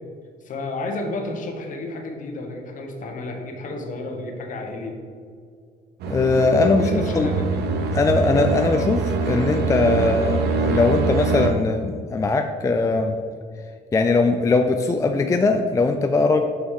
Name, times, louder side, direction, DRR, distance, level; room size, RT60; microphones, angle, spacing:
voice 1, 0.4-5.0 6.6-7.7, left 2 dB, 50° left, 3 dB, 1.2 m, -31 dB
sound 1, 6.0-11.5, right 4 dB, 80° right, 0.9 m, -24 dB
voice 2, 6.1-6.9 7.1-7.3 7.9-13.2 13.9-16.4, left 3 dB, 20° left, 5 dB, 0.4 m, -20 dB
6.3 x 5.8 x 3.7 m, 2.2 s
cardioid pair, 110°, 17 cm